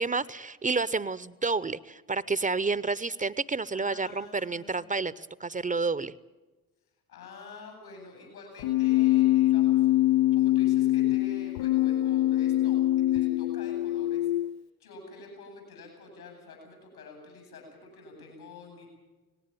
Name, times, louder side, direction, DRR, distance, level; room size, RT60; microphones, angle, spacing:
voice 1, 0.0-6.1, right 4 dB, 20° right, 19 dB, 0.7 m, -30 dB
voice 2, 3.7-4.8 7.1-12.8 13.1-14.3 14.8-18.9, left 3 dB, 80° left, 3 dB, 7.7 m, -47 dB
Keyboard (musical), 8.6-14.6, left 15 dB, 60° left, 0.6 m, -24 dB
19.0 x 18.0 x 9.0 m, 1.2 s
figure-of-eight pair, 45°, 43 cm